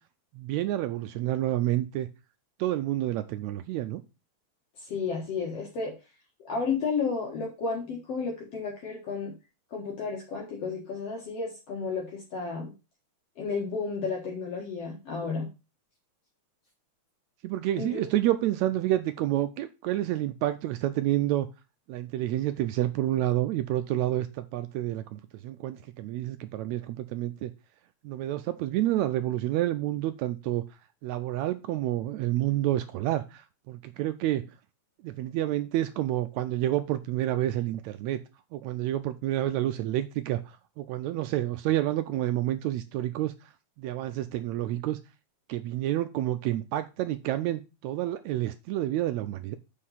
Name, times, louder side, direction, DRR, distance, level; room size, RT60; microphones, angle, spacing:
voice 1, 0.4-2.1 2.6-4.0 17.4-21.5 21.9-27.5 28.0-30.6 31.0-34.5 35.0-38.2 38.5-43.3 43.8-45.0 45.5-49.6, right 14 dB, 80° right, 10 dB, 1.8 m, -29 dB
voice 2, 4.8-5.9 6.4-9.3 9.7-12.7 13.4-15.5 17.8-18.0, left 5 dB, 60° left, -1 dB, 2.4 m, -32 dB
6.7 x 5.4 x 5.6 m, 0.28 s
omnidirectional pair, 3.4 m